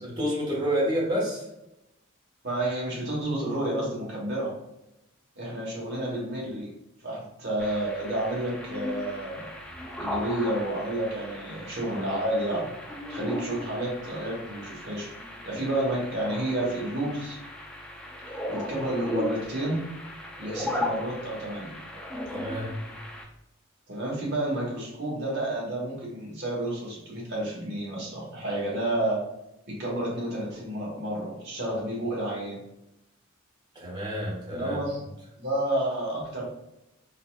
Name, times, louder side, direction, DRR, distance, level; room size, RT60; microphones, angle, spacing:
voice 1, 0.0-1.5 22.3-22.7 33.7-34.8, equal, 20° right, -6 dB, 1.1 m, -29 dB
voice 2, 2.4-4.5 5.4-6.7 7.0-9.5 10.0-12.7 13.1-15.1 15.4-17.4 18.3-19.8 20.4-21.7 23.9-29.2 29.7-32.6 34.5-35.0 35.4-36.4, right 1 dB, 55° right, -3 dB, 1.1 m, -30 dB
sound 1, 7.6-23.2, left 1 dB, 5° left, 0.3 m, -37 dB
4.0 x 2.4 x 2.3 m, 0.88 s
head